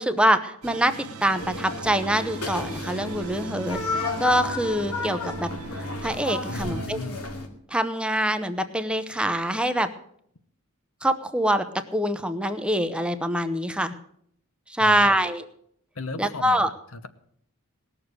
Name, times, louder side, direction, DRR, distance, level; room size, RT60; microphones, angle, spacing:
voice 1, 0.0-5.5 6.0-7.0 7.7-9.9 11.0-13.9 14.7-15.5 16.2-16.7, right 1 dB, 5° right, 9 dB, 0.7 m, -24 dB
sound 1, 0.6-6.9, right 4 dB, 80° right, 0.9 m, -40 dB
sound 2, 1.4-7.5, left 2 dB, 85° left, 2.4 m, -32 dB
voice 2, 6.5-7.2 14.8-15.1 15.9-17.1, left 3 dB, 65° left, 11 dB, 1.0 m, -36 dB
18.5 x 7.0 x 8.1 m, 0.68 s
head